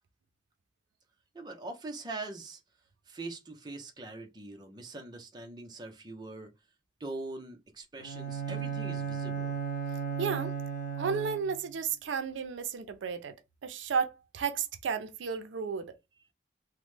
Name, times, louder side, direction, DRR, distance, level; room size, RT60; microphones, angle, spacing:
voice 1, 1.3-2.6 3.1-6.5 7.0-9.6, right 2 dB, 20° right, 0.5 m, -42 dB
Bowed string instrument, 8.0-11.7, right 7 dB, 45° left, 0.7 m, -35 dB
voice 2, 10.2-10.5 11.0-13.4 13.6-16.0, right 6 dB, 85° right, 0.4 m, -33 dB
2.9 x 2.0 x 3.2 m
head